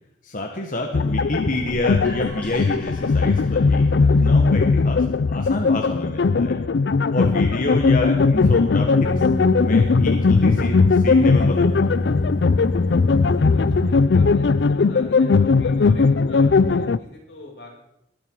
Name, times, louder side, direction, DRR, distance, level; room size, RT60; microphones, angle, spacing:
voice 1, 0.2-6.6 7.1-9.2 9.6-12.1, left 1 dB, 50° left, 2 dB, 1.5 m, -28 dB
sound 1, 0.9-17.0, left 4 dB, 70° left, 0.5 m, -19 dB
sound 2, 1.5-7.3, equal, 10° left, 7.9 m, -44 dB
sound 3, 9.0-14.0, left 2 dB, 30° left, 1.3 m, -25 dB
voice 2, 13.4-17.8, left 2 dB, 85° left, -1 dB, 5.6 m, -43 dB
21.0 x 11.5 x 4.7 m, 0.83 s
head